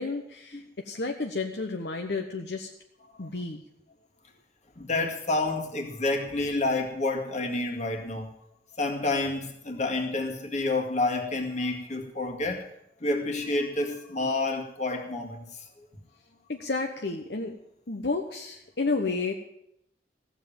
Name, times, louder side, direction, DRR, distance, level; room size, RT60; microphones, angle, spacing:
voice 1, 0.0-2.7 3.2-3.6 16.5-17.5 17.9-19.3, left 3 dB, 70° left, 3 dB, 1.1 m, -31 dB
voice 2, 4.8-8.3 8.8-12.6 13.0-15.7, left 2 dB, 40° left, 2 dB, 2.1 m, -29 dB
15.5 x 7.4 x 8.7 m, 0.76 s
head